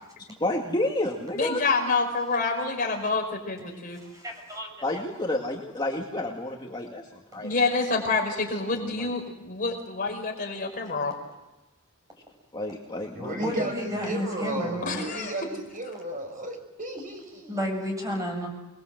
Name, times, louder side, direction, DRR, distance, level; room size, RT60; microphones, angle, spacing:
voice 1, 0.4-1.6 4.8-7.5 8.9-9.1 12.5-13.6, left 1 dB, 20° left, -1 dB, 2.2 m, -30 dB
voice 2, 1.3-4.0 7.4-11.1 14.8-15.3, left 3 dB, 40° left, 2 dB, 5.1 m, -27 dB
voice 3, 4.0-4.7 13.4-15.0 17.5-18.5, equal, 15° right, 2 dB, 6.9 m, -31 dB
voice 4, 13.1-17.6 18.1-18.2, right 1 dB, 40° right, 4 dB, 5.6 m, -35 dB
27.5 x 21.0 x 7.9 m, 0.99 s
head